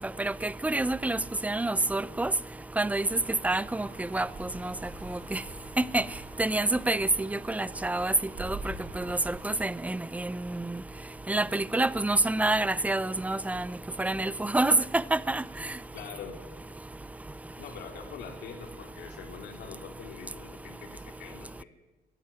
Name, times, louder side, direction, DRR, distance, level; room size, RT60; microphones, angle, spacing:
voice 1, 0.2-2.3 2.8-4.7 5.1-5.4 5.9-6.0 6.4-8.1 8.4-8.6 9.0-10.8 11.3-13.7 14.0-15.4, right 2 dB, 10° right, 0.7 m, -28 dB
sound 1, 3.4-9.6, right 2 dB, 40° right, 7.3 m, -45 dB
voice 2, 15.9-16.4 17.5-21.6, left 7 dB, 75° left, 4.1 m, -44 dB
22.5 x 14.5 x 10.0 m
cardioid pair, 110°, 17 cm